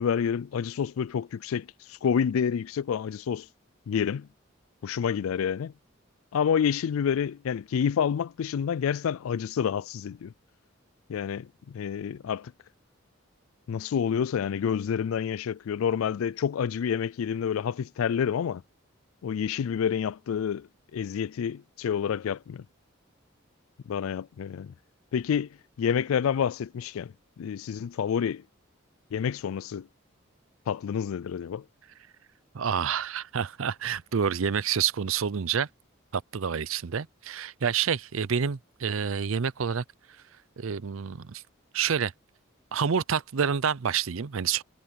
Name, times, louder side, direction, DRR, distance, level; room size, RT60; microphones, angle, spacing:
voice 1, 0.0-3.5 3.9-4.3 4.8-5.7 6.3-10.3 11.1-12.5 13.7-18.6 19.2-22.6 23.9-24.7 25.1-25.5 25.8-28.4 29.1-29.9 30.7-31.6, left 7 dB, 90° left, 0.3 m, -28 dB
voice 2, 32.5-35.7 36.1-39.8 40.6-41.4 41.7-42.1 42.7-44.6, right 7 dB, 80° right, 0.6 m, -28 dB
head